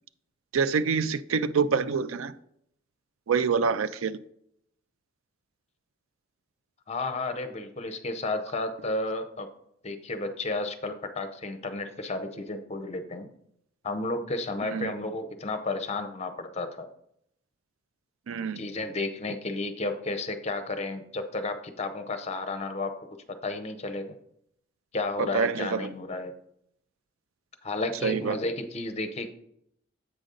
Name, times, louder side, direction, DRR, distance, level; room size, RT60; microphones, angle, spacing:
voice 1, 0.5-2.3 3.3-4.2 14.7-14.9 18.3-18.7 25.2-25.9 28.0-28.4, right 5 dB, 75° right, 0.4 m, -26 dB
voice 2, 6.9-9.5 9.8-13.3 13.8-16.9 18.6-22.9 23.3-24.2 24.9-26.3 27.6-29.3, left 2 dB, 30° left, 0.7 m, -32 dB
8.0 x 5.2 x 3.8 m
head